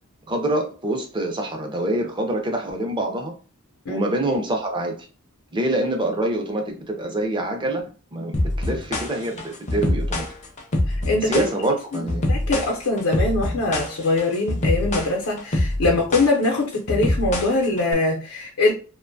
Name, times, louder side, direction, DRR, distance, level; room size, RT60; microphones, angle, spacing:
voice 1, 0.3-3.3 3.9-5.1 5.5-7.8 8.1-10.3 11.2-12.3, right 1 dB, 20° right, 0.5 m, -25 dB
sound 1, 8.3-17.9, left 1 dB, 35° left, 0.5 m, -25 dB
voice 2, 10.9-11.4 11.9-18.7, left 2 dB, 85° left, 0.6 m, -22 dB
2.5 x 2.2 x 2.6 m
head